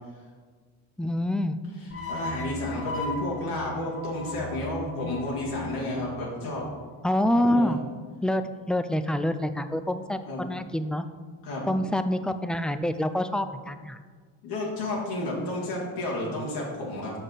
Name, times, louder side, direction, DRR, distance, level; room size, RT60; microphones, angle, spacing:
voice 1, 1.0-1.6 7.0-7.8 8.2-8.4 8.7-11.0 11.7-14.0, left 1 dB, ahead, 10 dB, 0.3 m, -26 dB
voice 2, 1.8-6.7 7.3-7.8 10.2-10.5 11.4-11.7 14.4-17.1, left 1 dB, 85° left, -5 dB, 2.1 m, -31 dB
sound 1, 1.9-7.1, left 2 dB, 30° left, 1.7 m, -38 dB
7.7 x 6.2 x 4.0 m, 1.5 s
hypercardioid pair, 55°, 47 cm